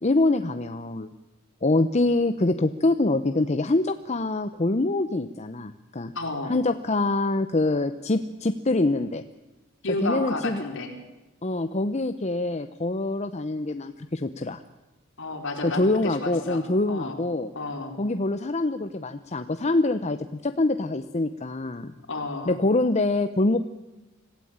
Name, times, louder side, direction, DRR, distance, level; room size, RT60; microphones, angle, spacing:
voice 1, 0.0-1.1 1.6-6.1 6.5-9.2 10.0-10.6 11.4-14.6 15.6-17.5 18.0-20.2 20.4-21.9 22.5-23.6, left 2 dB, 30° left, 9 dB, 0.8 m, -25 dB
voice 2, 6.1-6.6 9.8-10.9 15.2-17.2 17.5-18.0 22.1-22.6, left 2 dB, 60° left, 3 dB, 4.5 m, -31 dB
26.0 x 16.5 x 8.8 m, 1.1 s
head